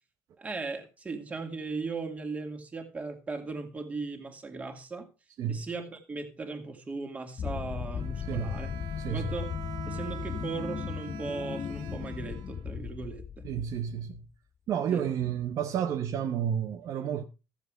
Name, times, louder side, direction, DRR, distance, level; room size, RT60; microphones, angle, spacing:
voice 1, 0.4-5.1 5.5-8.8 9.1-9.5 9.9-13.5 14.9-15.0, right 4 dB, 20° right, 2.4 m, -37 dB
sound 1, 7.4-14.2, left 8 dB, 35° left, 0.5 m, -37 dB
Bowed string instrument, 7.9-13.0, right 10 dB, 80° right, 1.4 m, -45 dB
voice 2, 9.0-9.3 13.4-14.2 14.7-17.2, right 9 dB, 55° right, 1.0 m, -31 dB
14.0 x 7.5 x 4.9 m
cardioid pair, 130°, 7 cm